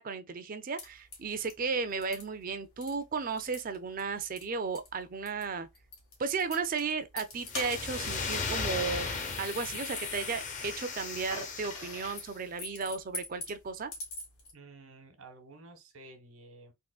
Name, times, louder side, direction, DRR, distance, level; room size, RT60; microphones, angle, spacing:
voice 1, 0.0-5.7 6.2-9.1 9.4-13.9, right 5 dB, 40° right, 0.4 m, -34 dB
sound 1, 0.8-14.5, left 3 dB, 85° left, 1.7 m, -46 dB
sound 2, 7.4-12.3, left 4 dB, 35° left, 0.6 m, -36 dB
voice 2, 14.5-16.7, right 2 dB, 75° right, 1.1 m, -52 dB
3.6 x 3.0 x 2.3 m
head